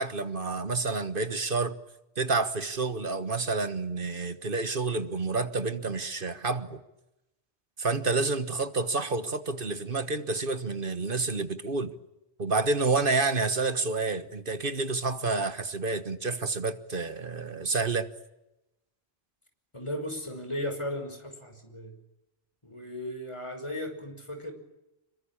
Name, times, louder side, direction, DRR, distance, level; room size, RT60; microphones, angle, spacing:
voice 1, 0.0-1.8 2.2-6.8 7.8-11.9 12.4-18.1, right 3 dB, 55° right, 1.6 m, -29 dB
voice 2, 19.7-22.0 22.6-24.5, left 1 dB, 25° left, 5.9 m, -36 dB
26.5 x 23.5 x 8.7 m
omnidirectional pair, 1.1 m